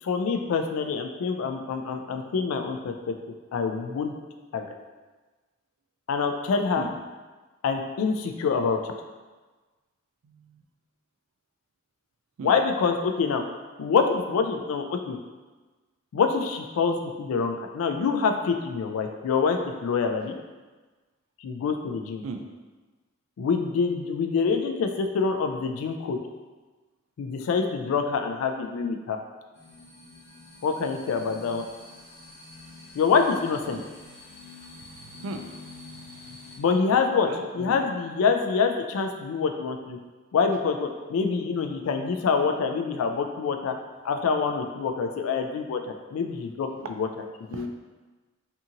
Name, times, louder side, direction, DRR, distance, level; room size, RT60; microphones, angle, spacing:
voice 1, 0.0-3.2 3.5-4.1 4.5-4.7 6.1-6.9 7.6-8.9 12.4-13.4 13.8-15.2 16.1-20.4 21.4-22.2 23.4-26.2 27.2-29.2 30.6-31.7 32.9-33.8 36.6-37.3 37.5-40.0 40.3-43.8 44.0-47.1 47.5-47.7, left 5 dB, 90° left, 5 dB, 0.3 m, -26 dB
voice 2, 10.2-10.6 12.4-12.5 22.2-22.4 33.7-33.8 35.1-35.5 36.2-36.4 37.2-37.8 46.8-46.9 47.5-47.7, right 4 dB, 85° right, 4 dB, 0.3 m, -37 dB
sound 1, 29.5-36.6, left 2 dB, 15° left, 0.6 m, -47 dB
2.7 x 2.7 x 2.5 m, 1.3 s
head